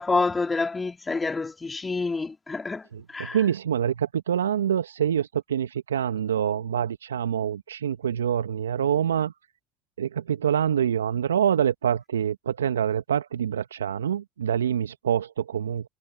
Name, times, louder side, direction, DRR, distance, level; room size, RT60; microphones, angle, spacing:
voice 1, 0.0-3.4, left 3 dB, 20° left, 3.3 m, -28 dB
voice 2, 2.9-9.3 10.0-15.9, right 9 dB, 85° right, 1.9 m, -26 dB
hypercardioid pair, 65°, 0 cm